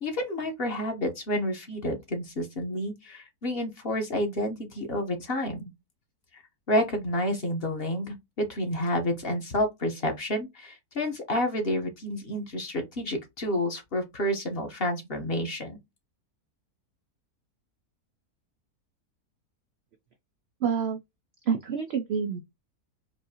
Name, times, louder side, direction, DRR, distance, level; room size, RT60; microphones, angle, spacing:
voice 1, 0.0-5.7 6.3-6.4 6.7-15.8, left 1 dB, 45° left, 1.0 m, -29 dB
voice 2, 20.6-21.0 21.5-22.4, right 7 dB, 85° right, 0.5 m, -27 dB
4.7 x 2.6 x 2.7 m
omnidirectional pair, 1.7 m